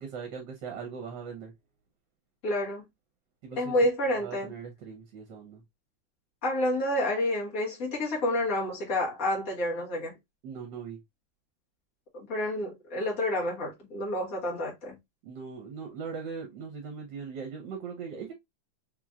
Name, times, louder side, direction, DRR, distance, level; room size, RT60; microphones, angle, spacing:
voice 1, 0.0-1.5 3.4-3.7 4.2-5.6 10.4-11.0 15.2-18.3, right 6 dB, 70° right, 1.5 m, -40 dB
voice 2, 2.4-2.8 3.6-4.5 6.4-10.1 12.1-15.0, left 1 dB, 50° left, 1.9 m, -29 dB
4.2 x 3.0 x 2.4 m
omnidirectional pair, 2.1 m